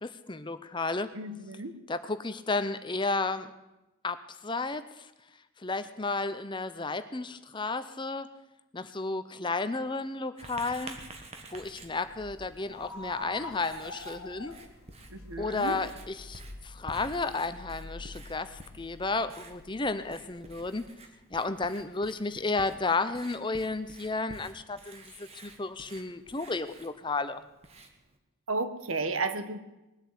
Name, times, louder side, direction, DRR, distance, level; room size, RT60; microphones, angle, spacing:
voice 1, 0.0-1.1 1.9-3.5 4.0-5.1 5.6-8.3 8.7-11.0 11.5-14.5 15.4-20.8 21.3-25.0 25.3-27.4, left 3 dB, 20° left, 12 dB, 0.7 m, -32 dB
voice 2, 1.1-1.7 15.1-15.8 28.5-29.6, right 3 dB, 75° right, 10 dB, 1.2 m, -33 dB
Writing, 10.4-28.2, right 2 dB, 30° right, 1.5 m, -51 dB
sound 1, 10.6-20.8, left 2 dB, 90° left, 1.5 m, -47 dB
20.5 x 8.1 x 8.2 m, 0.98 s
head